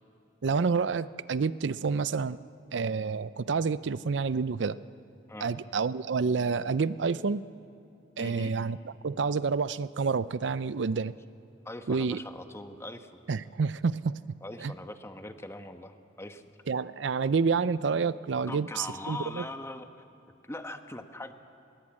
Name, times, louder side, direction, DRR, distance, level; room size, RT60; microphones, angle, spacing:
voice 1, 0.4-2.4 2.7-4.8 5.4-7.4 8.2-8.8 9.0-11.1 11.9-12.2 13.3-14.2 14.6-14.7 16.7-19.4, right 5 dB, 75° right, 16 dB, 0.5 m, -28 dB
voice 2, 8.2-8.5 11.6-13.1 14.4-16.6 18.5-19.9 20.4-21.3, left 2 dB, 15° left, 7 dB, 1.1 m, -41 dB
21.0 x 20.5 x 8.7 m, 2.8 s
head